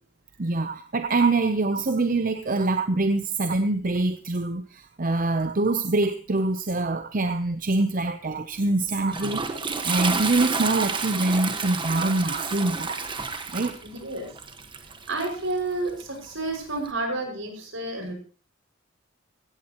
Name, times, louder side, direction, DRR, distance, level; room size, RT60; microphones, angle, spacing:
voice 1, 0.4-13.0 13.5-13.8, right 2 dB, 45° right, 9 dB, 0.8 m, -25 dB
Toilet flush, 8.6-16.9, right 4 dB, 25° right, 1.4 m, -31 dB
voice 2, 13.8-14.3 15.1-18.1, right 2 dB, 70° right, 3 dB, 6.2 m, -30 dB
18.5 x 14.5 x 3.0 m, 0.34 s
head